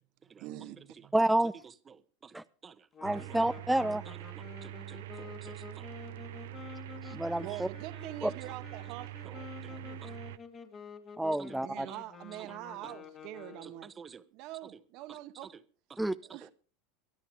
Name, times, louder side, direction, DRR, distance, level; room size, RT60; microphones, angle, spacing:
voice 1, 0.4-1.1 7.4-10.1 11.6-13.9 14.3-15.6 16.2-16.5, right 15 dB, 55° right, 1.5 m, -44 dB
voice 2, 1.1-1.5 2.3-2.4 3.0-4.0 7.1-7.7 8.2-8.3 11.2-11.9 16.0-16.2, right 1 dB, 5° right, 0.6 m, -29 dB
voice 3, 1.6-2.4 2.6-2.9 3.3-3.4 4.1-5.9 9.2-9.3 9.6-9.7 10.0-10.2 11.4-11.6 11.9-12.0 12.4-12.5 12.8-12.9 13.6-14.2 15.1-15.5 15.9-16.0 16.4-16.5, right 6 dB, 25° right, 1.4 m, -52 dB
sound 1, 2.9-13.9, left 7 dB, 35° left, 2.6 m, -49 dB
sound 2, 3.0-10.4, right 18 dB, 75° right, 0.8 m, -44 dB
23.5 x 11.0 x 3.4 m
hypercardioid pair, 90°, 0 cm